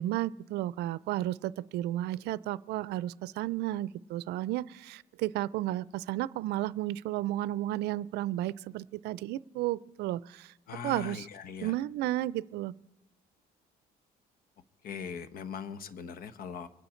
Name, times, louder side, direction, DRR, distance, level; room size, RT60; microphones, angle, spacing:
voice 1, 0.0-10.5 10.8-11.3 11.6-12.7, right 15 dB, 80° right, 19 dB, 0.5 m, -33 dB
voice 2, 10.7-11.7 14.8-16.7, left 6 dB, 60° left, 12 dB, 1.1 m, -40 dB
24.0 x 9.7 x 4.4 m, 0.92 s
cardioid pair, 110°, 17 cm